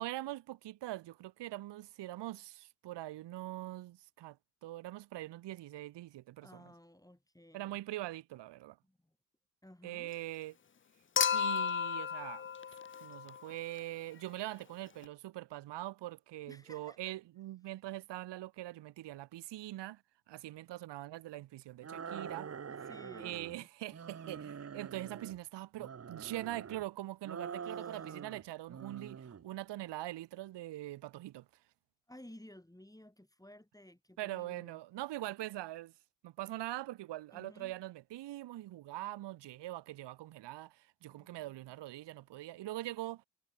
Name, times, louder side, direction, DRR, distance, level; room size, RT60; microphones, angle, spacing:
voice 1, 0.0-4.4 4.6-6.6 7.5-8.8 9.8-10.5 11.3-12.5 13.0-20.0 20.3-22.5 23.2-31.4 34.2-35.9 36.2-43.2, right 15 dB, 65° right, 0.8 m, -43 dB
voice 2, 6.4-7.8 8.8-9.2 9.6-10.1 16.5-17.1 22.7-23.7 27.7-27.9 32.1-34.8 37.3-37.7 41.0-41.8, left 1 dB, 10° left, 6.5 m, -56 dB
Human group actions / Chink clink / Liquid, 11.2-13.5 15.0-15.1, left 7 dB, 25° left, 0.6 m, -33 dB
sound 1, 21.8-23.6 23.9-25.4 25.8-26.8 27.2-28.4 28.7-29.4, right 7 dB, 30° right, 1.0 m, -45 dB
supercardioid pair, 55°, 46 cm